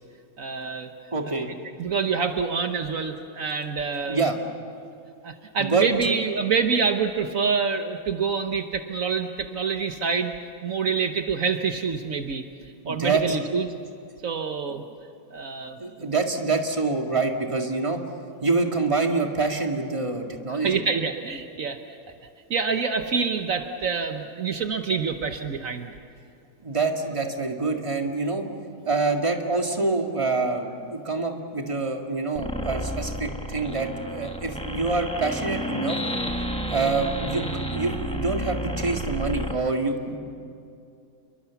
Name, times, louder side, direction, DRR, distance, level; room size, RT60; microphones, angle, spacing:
voice 1, 0.4-0.9 1.2-1.3 1.8-4.2 5.2-10.3 10.6-12.4 12.9-13.7 14.2-14.8 15.3-16.1 20.6-21.8 22.5-25.9, right 5 dB, 65° right, 6 dB, 1.4 m, -26 dB
voice 2, 1.1-1.5 4.0-4.4 5.6-6.2 12.8-13.4 15.8-18.0 18.4-20.8 26.6-28.5 28.9-36.0 36.7-37.4 37.7-40.2, right 3 dB, 20° right, 3 dB, 2.0 m, -26 dB
sound 1, 32.4-39.6, equal, 5° left, 1.6 m, -31 dB
28.5 x 23.0 x 7.1 m, 2.5 s
omnidirectional pair, 1.5 m